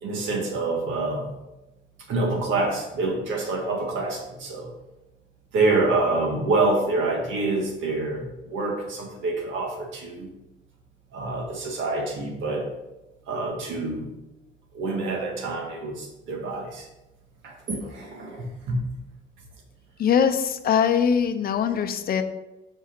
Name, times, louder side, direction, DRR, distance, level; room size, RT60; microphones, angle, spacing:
voice 1, 0.0-1.3 2.1-4.7 5.5-10.3 11.1-12.7 13.3-14.1 14.7-16.9 17.4-18.8, right 2 dB, 80° right, 1 dB, 1.6 m, -26 dB
voice 2, 20.0-22.2, left 7 dB, 50° left, 9 dB, 0.6 m, -22 dB
5.6 x 4.7 x 4.5 m, 0.99 s
cardioid pair, 110°, 20 cm